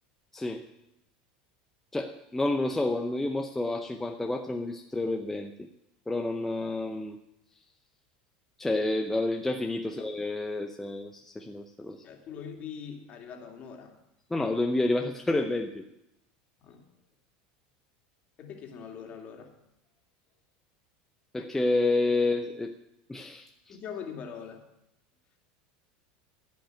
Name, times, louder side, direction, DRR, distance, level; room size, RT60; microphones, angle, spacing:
voice 1, 0.3-0.7 1.9-5.7 6.1-7.2 8.6-12.0 14.3-15.9 21.3-22.8 23.1-23.8, left 2 dB, 10° left, 4 dB, 0.7 m, -29 dB
voice 2, 12.0-14.0 16.6-16.9 18.4-19.5 23.7-24.7, left 7 dB, 40° left, 2 dB, 2.4 m, -42 dB
14.5 x 5.4 x 9.0 m, 0.86 s
supercardioid pair, 120°, 4 cm